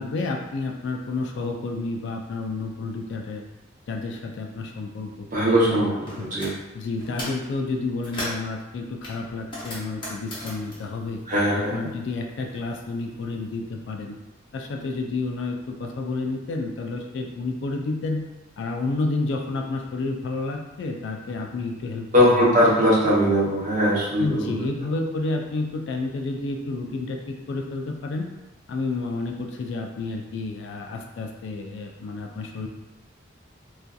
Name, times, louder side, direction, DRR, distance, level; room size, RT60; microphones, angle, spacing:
voice 1, 0.0-3.4 3.9-6.3 6.7-11.2 11.6-14.2 14.5-18.2 18.6-22.5 24.2-28.3 28.7-32.7, left 3 dB, 70° left, 2 dB, 0.3 m, -30 dB
voice 2, 5.3-6.5 11.3-11.9 22.1-24.7, equal, 45° right, -7 dB, 0.8 m, -20 dB
sound 1, 6.1-6.6 7.0-7.5 7.8-8.5 9.0-12.0 12.2-13.4, left 1 dB, 25° left, 0.7 m, -37 dB
2.6 x 2.3 x 2.3 m, 1.1 s
head